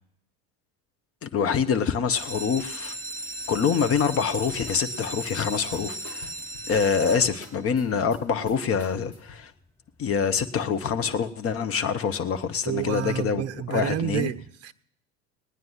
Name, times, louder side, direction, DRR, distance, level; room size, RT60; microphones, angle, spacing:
voice 1, 1.2-2.9 3.5-6.3 6.7-9.5 10.0-13.4 13.7-14.3, left 6 dB, 30° left, 9 dB, 1.1 m, -25 dB
sound 1, 2.0-7.7 8.4-8.8 9.2-9.3 9.6-9.7 10.1-10.2, right 1 dB, 5° left, 1.1 m, -36 dB
sound 2, 3.9-9.5, left 3 dB, 75° left, 2.0 m, -47 dB
voice 2, 12.6-14.7, right 10 dB, 35° right, 12 dB, 0.7 m, -29 dB
20.0 x 9.4 x 5.8 m, 0.71 s
figure-of-eight pair, 75°, 45 cm